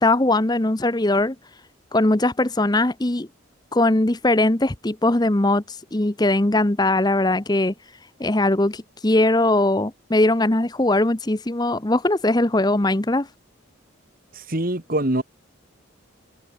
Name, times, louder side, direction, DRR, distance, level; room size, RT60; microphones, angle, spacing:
voice 1, 0.0-1.4 1.9-3.3 3.7-7.7 8.2-13.3, left 2 dB, 20° left, 0.8 m, -20 dB
voice 2, 14.3-15.2, right 1 dB, 45° right, 2.1 m, -24 dB
head